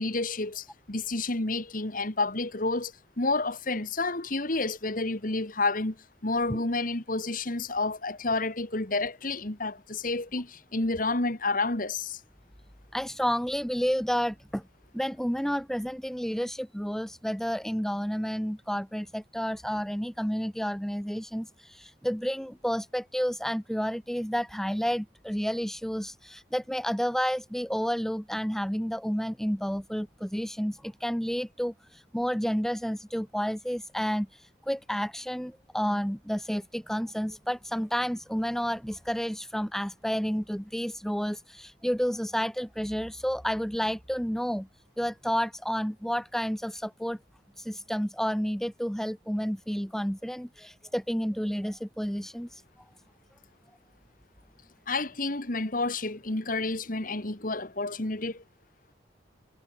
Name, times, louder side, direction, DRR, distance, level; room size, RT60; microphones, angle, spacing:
voice 1, 0.0-6.0 6.2-12.2 54.9-58.4, left 3 dB, 45° left, 2.0 m, -30 dB
voice 2, 12.9-14.6 14.9-44.7 45.0-47.2 47.6-52.6, equal, ahead, 2.2 m, -30 dB
head